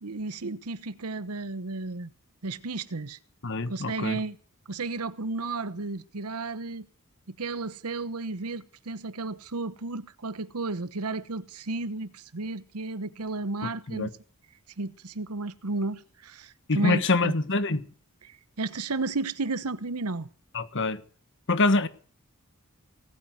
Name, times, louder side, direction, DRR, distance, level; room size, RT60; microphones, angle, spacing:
voice 1, 0.0-2.1 2.4-3.2 3.7-4.4 4.7-6.9 7.3-14.1 14.8-17.3 18.2-20.3, right 3 dB, 85° right, 1.0 m, -33 dB
voice 2, 3.4-4.2 13.9-14.1 16.7-17.8 20.5-21.0 21.5-21.9, left 3 dB, 55° left, 1.3 m, -25 dB
18.5 x 9.4 x 7.8 m
head